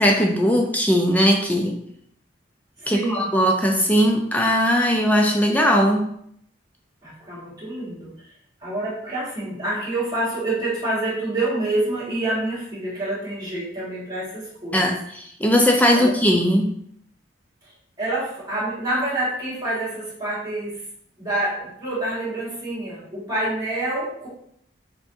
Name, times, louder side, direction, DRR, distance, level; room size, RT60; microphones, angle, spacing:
voice 1, 0.0-1.8 2.9-6.1 14.7-16.7, equal, 10° left, 1 dB, 0.3 m, -19 dB
voice 2, 2.8-3.3 7.0-8.3 8.6-14.9 16.0-16.1 18.0-20.8 21.2-24.3, right 2 dB, 20° right, -9 dB, 1.7 m, -27 dB
5.5 x 2.8 x 2.6 m, 0.69 s
head